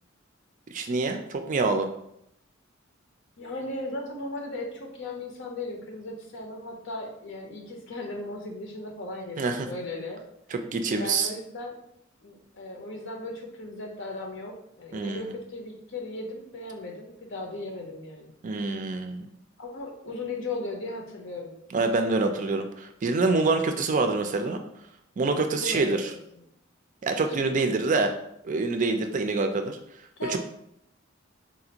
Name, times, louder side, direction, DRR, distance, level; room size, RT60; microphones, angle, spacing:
voice 1, 0.7-1.9 9.4-9.7 10.5-11.3 14.9-15.3 18.4-19.3 21.7-24.6 25.2-26.1 27.0-28.1 28.4-29.8 30.3-30.4, right 3 dB, 40° right, 6 dB, 0.4 m, -26 dB
voice 2, 3.4-10.2 10.9-11.7 12.2-18.3 19.6-21.5 25.6-26.0 26.3-26.4 27.2-27.7 30.2-30.4, left 2 dB, 65° left, 1 dB, 0.8 m, -37 dB
4.1 x 2.4 x 2.9 m, 0.76 s
head